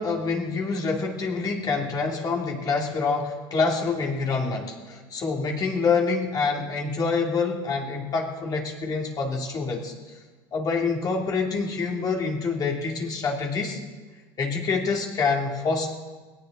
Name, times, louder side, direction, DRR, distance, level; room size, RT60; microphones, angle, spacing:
voice 1, 0.0-10.2 10.5-13.8 14.4-15.9, left 4 dB, 35° left, -1 dB, 2.8 m, -26 dB
19.0 x 17.5 x 4.0 m, 1.3 s
supercardioid pair, 115°, 12 cm